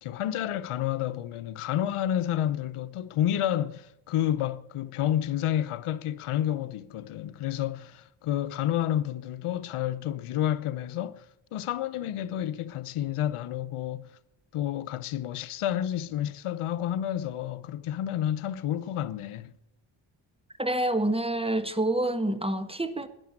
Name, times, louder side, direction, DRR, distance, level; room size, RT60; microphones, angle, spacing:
voice 1, 0.0-11.3 11.5-14.1 14.5-19.5, left 11 dB, 80° left, 0.8 m, -30 dB
voice 2, 20.6-23.1, right 1 dB, 10° right, 1.4 m, -27 dB
12.0 x 10.5 x 8.7 m
cardioid pair, 70°, 50 cm